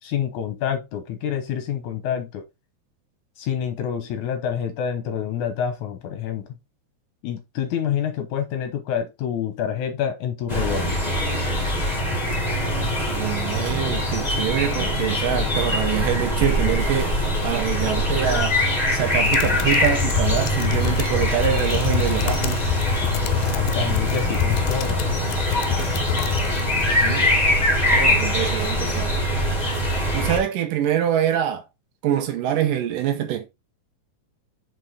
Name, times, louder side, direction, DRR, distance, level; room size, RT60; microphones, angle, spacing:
voice 1, 0.0-2.4 3.4-6.5 7.2-10.9 23.2-25.0, left 8 dB, 70° left, 2.2 m, -27 dB
sound 1, 10.5-30.4, left 1 dB, 15° left, 1.7 m, -23 dB
voice 2, 13.0-22.6 27.0-27.4 27.9-29.1 30.1-31.6 32.0-33.5, right 11 dB, 75° right, 2.5 m, -25 dB
sound 2, 19.1-27.1, left 17 dB, 85° left, 2.4 m, -27 dB
6.1 x 5.5 x 3.8 m
omnidirectional pair, 4.1 m